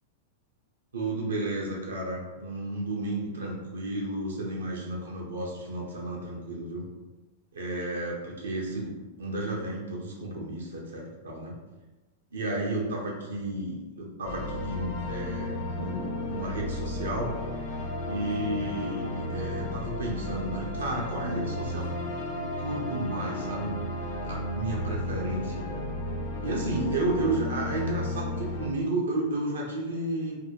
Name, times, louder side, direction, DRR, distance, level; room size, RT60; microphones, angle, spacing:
voice 1, 0.9-6.9 7.5-8.9 9.2-11.5 12.3-17.3 18.1-22.1 22.4-23.7 24.2-25.7 26.4-30.4, right 2 dB, 75° right, -2 dB, 0.4 m, -32 dB
sound 1, 14.2-28.7, left 1 dB, 60° left, 0.5 m, -33 dB
2.5 x 2.1 x 2.7 m, 1.2 s
figure-of-eight pair, 95°, 0 cm